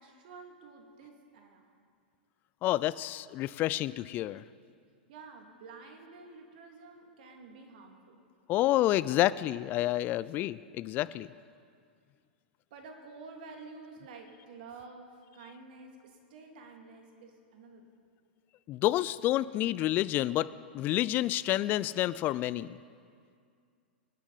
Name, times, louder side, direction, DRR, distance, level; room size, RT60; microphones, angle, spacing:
voice 1, 0.0-1.7 5.1-8.2 12.7-17.9, right 4 dB, 60° right, 3 dB, 2.3 m, -50 dB
voice 2, 2.6-4.4 8.5-11.3 18.7-20.5 20.7-22.8, left 15 dB, 35° left, 18 dB, 0.4 m, -29 dB
25.0 x 9.7 x 4.1 m, 2.2 s
figure-of-eight pair, 100°, 6 cm